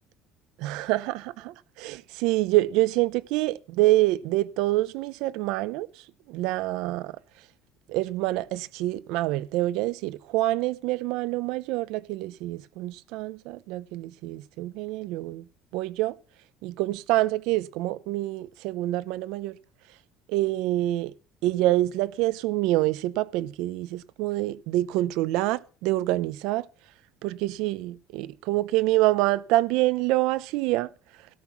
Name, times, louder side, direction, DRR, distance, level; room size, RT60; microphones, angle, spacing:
voice 1, 0.6-5.9 6.3-7.1 7.9-15.4 15.7-16.1 16.6-19.6 20.3-21.1 21.4-26.7 27.2-30.9, right 17 dB, 65° right, 0.6 m, -26 dB
17.0 x 6.0 x 6.0 m
cardioid pair, 170°, 0 cm